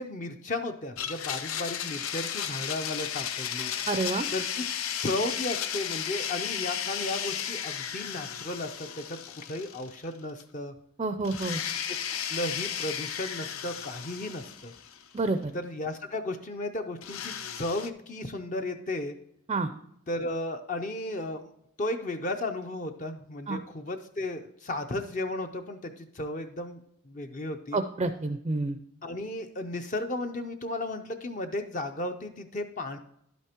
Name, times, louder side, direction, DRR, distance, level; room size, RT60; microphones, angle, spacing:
voice 1, 0.0-3.7 4.3-4.7 5.0-10.7 11.8-12.0 12.3-14.7 15.5-19.2 20.1-21.5 21.8-26.8 27.1-27.8 29.0-33.0, left 2 dB, 35° left, 6 dB, 0.5 m, -34 dB
Domestic sounds home sounds, 1.0-10.1 10.4-10.5 11.2-15.2 17.0-17.9, left 9 dB, 80° left, 0.6 m, -34 dB
voice 2, 3.9-4.3 11.0-11.6 15.1-15.5 19.5-19.7 23.5-23.6 27.7-28.8, right 3 dB, 25° right, 8 dB, 0.4 m, -28 dB
11.5 x 8.2 x 2.9 m, 0.74 s
head